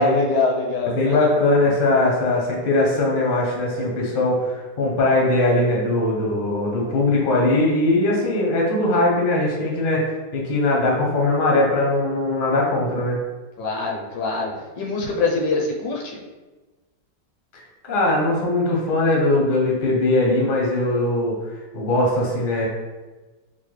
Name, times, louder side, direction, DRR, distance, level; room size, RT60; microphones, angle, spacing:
voice 1, 0.0-1.4 13.6-16.2, left 3 dB, 75° left, -2 dB, 1.1 m, -24 dB
voice 2, 0.9-10.0 10.3-13.2 17.8-22.7, left 2 dB, 50° left, -2 dB, 0.6 m, -20 dB
4.2 x 2.1 x 3.2 m, 1.2 s
omnidirectional pair, 2.0 m